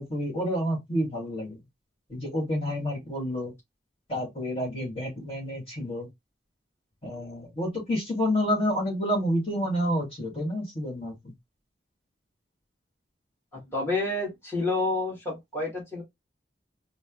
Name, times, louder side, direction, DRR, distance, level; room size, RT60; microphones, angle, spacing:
voice 1, 0.0-1.6 2.1-3.5 4.1-6.1 7.0-11.3, equal, 30° left, 2.2 m, -29 dB
voice 2, 13.5-16.0, left 2 dB, 15° left, 2.1 m, -29 dB
4.2 x 2.2 x 3.9 m
head